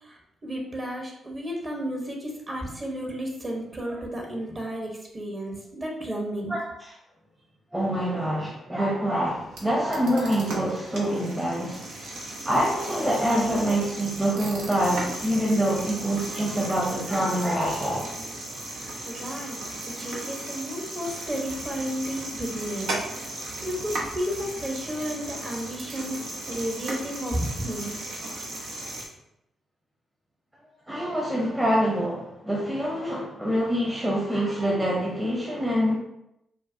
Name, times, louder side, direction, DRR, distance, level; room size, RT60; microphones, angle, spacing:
voice 1, 0.0-6.6 19.0-23.0 23.4-26.2 26.5-28.0, equal, 35° right, 0 dB, 1.1 m, -32 dB
voice 2, 6.5-6.9 7.7-11.9 12.4-18.1 30.9-36.0, equal, 15° right, -3 dB, 0.9 m, -25 dB
sound 1, 9.2-29.1, right 2 dB, 75° right, 0.7 m, -36 dB
4.5 x 2.1 x 2.7 m, 0.82 s
hypercardioid pair, 40°, 0 cm